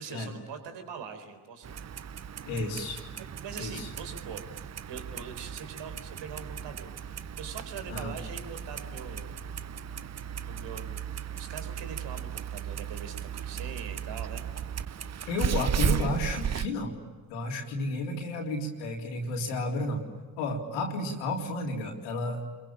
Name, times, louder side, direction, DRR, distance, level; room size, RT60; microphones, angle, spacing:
voice 1, 0.0-1.8 3.4-9.4 10.4-14.5, right 6 dB, 60° right, 7 dB, 4.4 m, -43 dB
Clock, 1.6-16.7, right 8 dB, 35° right, 0.9 m, -35 dB
voice 2, 2.5-3.0 3.6-3.9 7.9-8.1 15.3-17.0 17.3-20.0 20.4-22.5, left 1 dB, 75° left, 0 dB, 3.8 m, -32 dB
29.0 x 22.5 x 8.8 m, 1.4 s
figure-of-eight pair, 45°, 48 cm